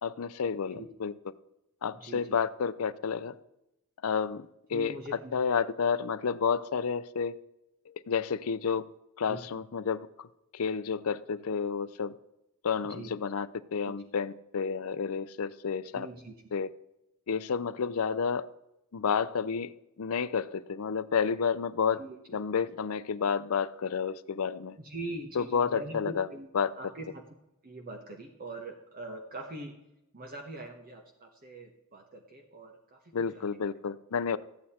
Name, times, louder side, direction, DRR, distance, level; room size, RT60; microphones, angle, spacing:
voice 1, 0.0-1.1 1.8-3.4 4.0-5.0 5.3-7.4 7.9-8.9 9.2-10.3 10.5-12.1 12.6-16.1 16.5-16.7 17.3-18.5 18.9-19.7 20.0-22.0 22.3-24.8 25.3-26.3 26.5-26.7 33.1-34.4, left 6 dB, 75° left, 14 dB, 0.5 m, -30 dB
voice 2, 1.9-2.4 4.7-5.3 9.3-9.4 12.8-13.1 13.8-13.9 15.9-16.3 22.0-22.2 24.8-26.5 26.8-27.2 27.6-29.8 30.1-33.0 33.3-33.4, right 2 dB, 40° right, 3 dB, 1.1 m, -42 dB
13.5 x 8.6 x 4.3 m, 0.90 s
head